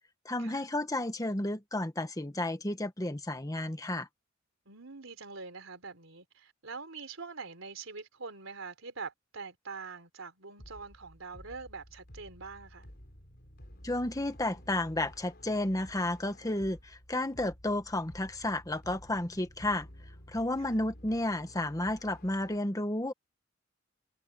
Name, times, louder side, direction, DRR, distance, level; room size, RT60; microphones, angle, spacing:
voice 1, 0.2-4.1 13.8-19.9 20.3-23.1, left 1 dB, 15° left, 1.3 m, -32 dB
voice 2, 4.7-12.9 20.6-20.8, right 4 dB, 75° right, 4.0 m, -44 dB
sound 1, 10.6-22.6, equal, 50° left, 4.5 m, -53 dB
head